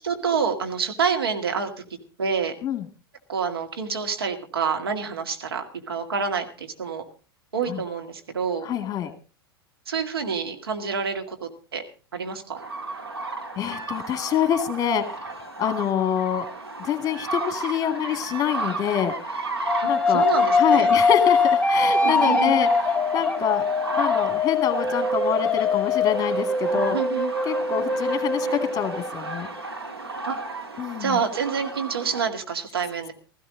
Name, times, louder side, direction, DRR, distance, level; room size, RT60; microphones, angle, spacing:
voice 1, 0.0-1.7 2.2-2.5 3.3-7.0 7.5-8.7 9.9-11.8 12.1-12.6 19.8-20.9 22.0-22.5 26.7-27.3 30.3-30.4 31.0-33.1, right 6 dB, 75° right, 4 dB, 2.1 m, -27 dB
voice 2, 8.6-9.1 13.6-15.0 15.6-16.5 16.8-19.1 19.8-20.2 20.5-22.7 23.1-23.6 24.0-27.0 27.5-29.5 30.8-31.2, left 9 dB, 30° left, 8 dB, 2.2 m, -26 dB
sound 1, 12.6-32.2, right 2 dB, 90° right, 2.0 m, -34 dB
sound 2, 19.7-29.6, left 4 dB, 10° left, 0.9 m, -22 dB
16.0 x 15.0 x 3.8 m, 0.36 s
figure-of-eight pair, 90°, 13 cm